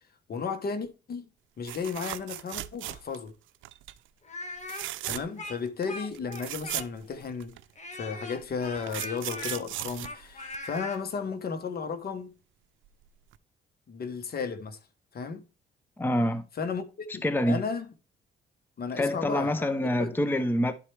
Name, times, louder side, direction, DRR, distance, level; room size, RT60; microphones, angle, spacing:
voice 1, 0.3-1.3 1.6-3.3 4.7-7.6 7.9-12.3 13.9-14.8 15.1-15.4 16.6-17.8 18.8-20.2, left 5 dB, 50° left, 1.2 m, -34 dB
sound 1, 1.6-3.3 3.6-4.0 4.6-5.5 5.8-5.9 6.1-7.6 8.4-10.9 12.9-13.0 13.3-13.4, right 15 dB, 75° right, 0.5 m, -37 dB
Speech, 4.2-7.1 7.8-11.0, left 2 dB, 35° left, 1.7 m, -40 dB
voice 2, 16.0-16.4 17.2-17.6 19.0-20.7, left 1 dB, 10° left, 0.7 m, -26 dB
11.0 x 4.5 x 3.3 m
cardioid pair, 90°, 20 cm